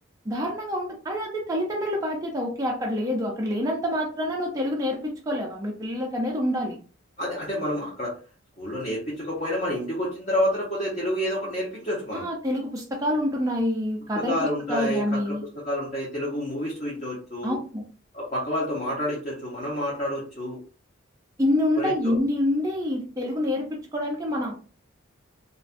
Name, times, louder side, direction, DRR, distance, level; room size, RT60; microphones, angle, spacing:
voice 1, 0.3-6.8 12.1-15.4 17.4-17.8 21.4-24.5, left 1 dB, 15° right, -2 dB, 0.3 m, -27 dB
voice 2, 7.2-8.1 8.6-12.2 14.2-15.4 15.6-17.6 18.1-20.6 21.8-22.1, equal, 35° left, -6 dB, 0.7 m, -29 dB
2.4 x 2.2 x 2.4 m, 0.39 s
head